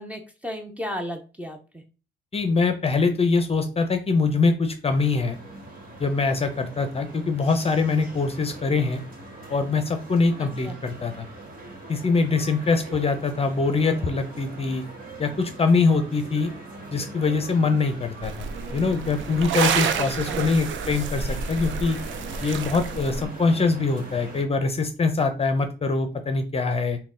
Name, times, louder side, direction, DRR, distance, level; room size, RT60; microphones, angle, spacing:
voice 1, 0.0-1.8 10.4-10.8 19.9-20.5, equal, 5° right, 4 dB, 0.7 m, -35 dB
voice 2, 2.3-5.4 6.0-9.0 9.5-11.3 11.9-14.8 15.2-16.5 16.9-18.5 18.7-22.0 22.4-27.0, left 4 dB, 30° left, 8 dB, 0.6 m, -23 dB
sound 1, 4.9-24.4, right 2 dB, 45° right, 1.5 m, -41 dB
sound 2, 18.2-23.2, right 6 dB, 75° right, 0.5 m, -29 dB
3.9 x 2.3 x 3.7 m, 0.34 s
cardioid pair, 90°, 20 cm